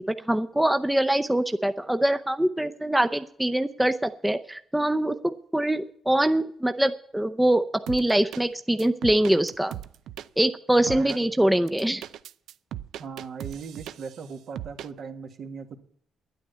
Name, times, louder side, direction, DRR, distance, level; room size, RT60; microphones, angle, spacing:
voice 1, 0.1-9.8 10.4-12.0, right 1 dB, 5° right, 8 dB, 0.6 m, -24 dB
sound 1, 7.9-8.4 8.8-10.3 10.9-11.2 11.7-14.2 14.6-14.9, right 11 dB, 80° right, 0.5 m, -38 dB
voice 2, 10.8-11.3 13.0-15.8, right 5 dB, 65° right, 6 dB, 1.9 m, -38 dB
10.5 x 9.2 x 8.2 m, 0.62 s
cardioid pair, 90°, 0 cm